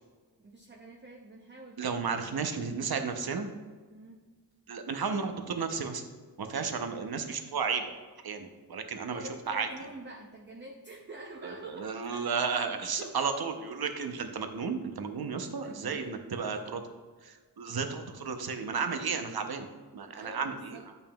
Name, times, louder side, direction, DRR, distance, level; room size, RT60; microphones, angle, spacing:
voice 1, 0.4-2.6 3.9-4.3 8.9-13.2 15.4-16.8 20.1-20.9, right 2 dB, 30° right, 1 dB, 0.5 m, -47 dB
voice 2, 1.8-3.5 4.7-6.0 6.4-7.8 8.2-9.7 11.4-16.8 17.2-19.7 19.9-20.8, right 5 dB, 60° right, 6 dB, 0.7 m, -33 dB
8.9 x 5.4 x 2.2 m, 1.4 s
wide cardioid pair, 80°, 41 cm